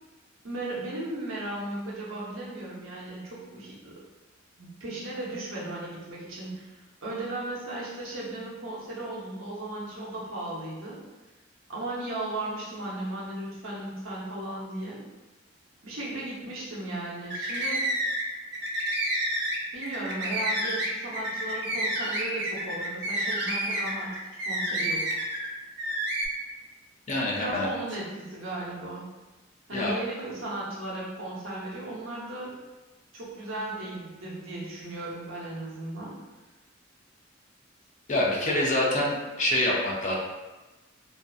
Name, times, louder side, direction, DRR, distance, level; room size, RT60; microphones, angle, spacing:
voice 1, 0.4-3.9 4.6-11.0 11.7-15.0 15.8-17.9 19.7-24.2 24.4-25.2 27.3-29.1 29.7-32.5 33.1-36.1, right 1 dB, 90° right, -6 dB, 0.8 m, -36 dB
sound 1, 17.2-18.2 18.5-25.5 25.8-26.3, right 1 dB, 60° right, 0.5 m, -29 dB
voice 2, 27.1-27.7 29.7-29.9 38.1-40.2, left 1 dB, 40° left, -3 dB, 0.5 m, -26 dB
2.6 x 2.4 x 2.3 m, 1.1 s
head